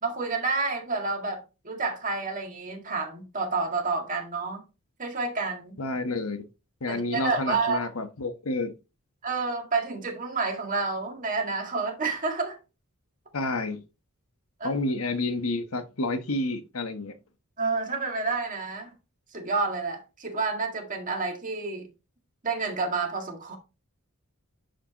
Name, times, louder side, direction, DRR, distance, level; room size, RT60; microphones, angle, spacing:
voice 1, 0.0-4.6 5.0-5.8 6.9-7.8 9.2-12.6 14.6-14.7 17.6-18.9 19.3-21.9 22.4-23.6, right 4 dB, 35° right, 2.0 m, -29 dB
voice 2, 5.8-6.5 6.8-8.7 13.3-13.8 14.6-17.2, left 2 dB, 80° left, 1.1 m, -29 dB
10.0 x 5.0 x 2.9 m
head